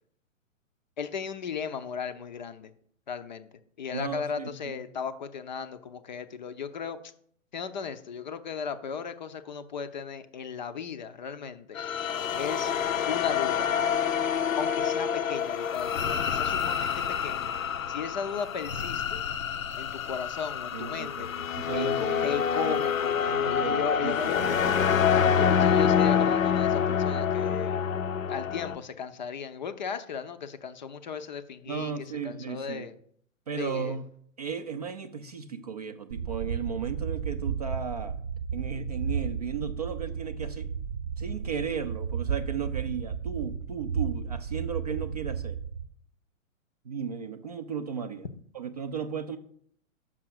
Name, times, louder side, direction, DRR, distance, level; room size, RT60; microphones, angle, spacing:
voice 1, 1.0-2.7 3.1-3.5 3.8-7.0 7.5-11.8 12.4-12.7 13.1-13.7 14.6-16.9 17.2-17.5 17.9-19.2 19.8-21.3 21.7-24.6 25.4-27.8 28.3-31.9 32.2-32.9 33.6-34.0, left 6 dB, 35° left, 11 dB, 0.5 m, -36 dB
voice 2, 3.9-4.8 20.7-21.3 21.5-22.4 22.6-22.8 23.3-25.1 31.7-32.9 33.5-34.0 34.4-38.1 38.5-40.7 41.2-45.6 46.8-48.3 48.5-49.4, right 6 dB, 30° right, 9 dB, 0.4 m, -35 dB
sound 1, 11.8-28.8, left 7 dB, 75° left, 0.6 m, -27 dB
sound 2, 36.1-45.9, right 7 dB, 55° right, 0.8 m, -33 dB
6.1 x 5.8 x 6.2 m, 0.64 s
figure-of-eight pair, 120°, 41 cm